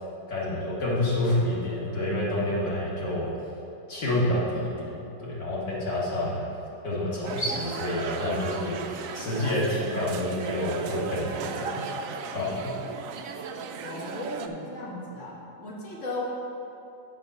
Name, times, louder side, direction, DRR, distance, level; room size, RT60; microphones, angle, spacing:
voice 1, 0.3-3.3 3.9-6.4 6.8-8.7 9.1-11.8 12.3-12.7, left 1 dB, 75° left, -7 dB, 2.4 m, -28 dB
sound 1, 7.2-14.5, right 5 dB, 75° right, 0.8 m, -36 dB
voice 2, 13.8-16.2, left 2 dB, 45° left, -4 dB, 1.5 m, -36 dB
9.5 x 5.2 x 5.5 m, 2.8 s
omnidirectional pair, 1.9 m